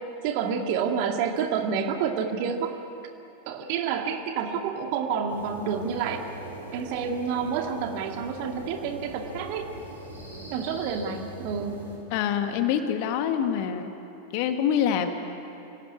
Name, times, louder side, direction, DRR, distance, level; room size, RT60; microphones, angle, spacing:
voice 1, 0.2-2.7 3.5-6.2 6.7-9.7 10.5-11.8, right 6 dB, 45° right, 4 dB, 2.3 m, -29 dB
sound 1, 5.3-12.0, right 1 dB, 85° right, 6.3 m, -41 dB
voice 2, 12.1-13.9 14.3-15.1, left 9 dB, 45° left, 7 dB, 1.8 m, -25 dB
25.5 x 17.5 x 9.7 m, 2.9 s
figure-of-eight pair, 90°, 0 cm